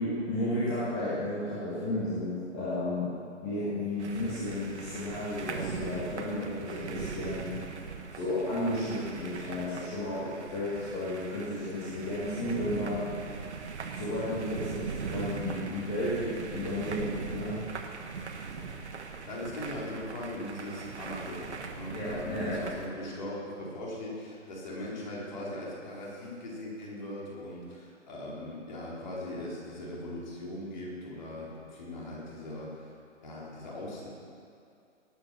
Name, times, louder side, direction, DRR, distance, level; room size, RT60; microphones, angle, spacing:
voice 1, 0.0-3.1 3.4-7.5 8.1-13.0 13.9-17.6 21.9-22.6, left 1 dB, 15° left, -11 dB, 2.1 m, -33 dB
sound 1, 4.0-22.9, right 5 dB, 60° right, 1.6 m, -40 dB
voice 2, 19.3-32.9 33.2-34.1, left 1 dB, 35° left, -5 dB, 3.8 m, -40 dB
18.5 x 9.1 x 6.1 m, 2.5 s
hypercardioid pair, 175°, 38 cm